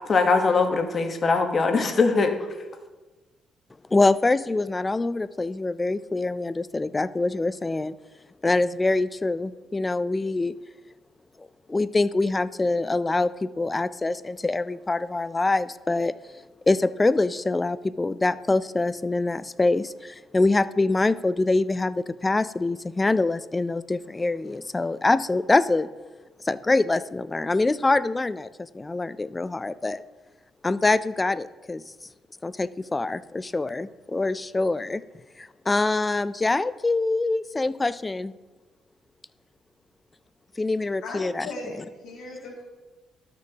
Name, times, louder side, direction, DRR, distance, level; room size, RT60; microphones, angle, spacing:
voice 1, 0.1-2.4, left 4 dB, 40° left, 5 dB, 1.2 m, -21 dB
voice 2, 3.9-7.9 8.4-10.5 11.4-16.1 16.7-25.9 26.4-28.5 28.7-30.0 30.6-31.8 32.4-35.0 35.4-38.3 40.6-41.5, left 2 dB, 20° left, 15 dB, 0.3 m, -24 dB
voice 3, 41.0-42.6, left 2 dB, 80° left, -7 dB, 1.9 m, -37 dB
12.5 x 6.0 x 2.9 m, 1.2 s
cardioid pair, 90°, 0 cm